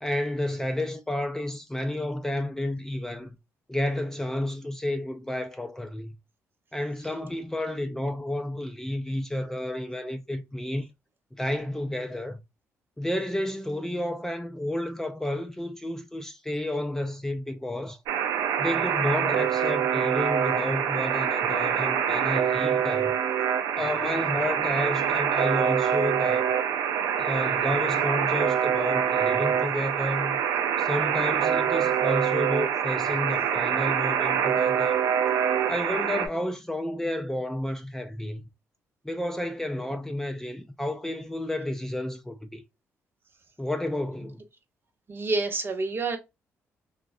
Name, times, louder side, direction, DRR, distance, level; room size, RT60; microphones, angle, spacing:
voice 1, 0.0-3.4 3.7-6.1 6.7-10.9 11.3-12.4 13.0-18.0 18.6-23.2 23.8-26.5 27.2-30.4 30.8-35.0 35.7-38.4 39.0-42.6 43.6-44.4, left 1 dB, 10° left, 0.3 m, -31 dB
Alarm, 18.1-36.3, right 8 dB, 80° right, 0.4 m, -25 dB
voice 2, 45.1-46.2, right 3 dB, 40° right, 0.7 m, -28 dB
2.6 x 2.1 x 2.4 m
supercardioid pair, 65°, 6 cm